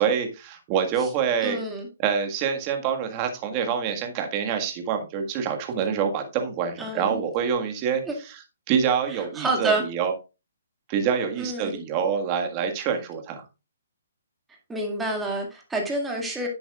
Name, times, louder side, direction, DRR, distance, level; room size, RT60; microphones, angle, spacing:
voice 1, 0.0-1.6 2.0-8.4 8.7-10.1 10.9-13.4, right 7 dB, 25° right, 5 dB, 1.7 m, -26 dB
voice 2, 1.4-1.9 6.8-7.2 8.1-8.2 9.1-9.8 11.4-11.8 14.7-16.5, right 2 dB, 5° right, 0 dB, 2.1 m, -28 dB
10.5 x 7.7 x 2.4 m, 0.28 s
hypercardioid pair, 160°, 0 cm